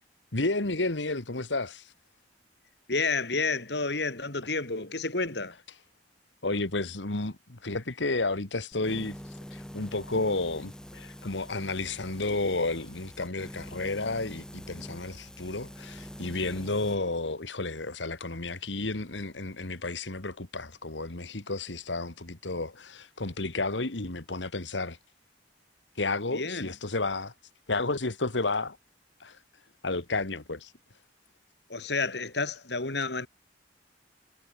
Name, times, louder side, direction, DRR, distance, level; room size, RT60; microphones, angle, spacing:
voice 1, 0.3-1.9 5.7-5.8 6.4-25.0 26.0-27.3 27.7-28.8 29.2-30.7, left 2 dB, 85° left, 2.1 m, -32 dB
voice 2, 2.9-5.6 26.3-26.7 31.7-33.3, left 3 dB, 65° left, 3.5 m, -30 dB
sound 1, 8.7-17.0, equal, 5° left, 6.5 m, -45 dB
head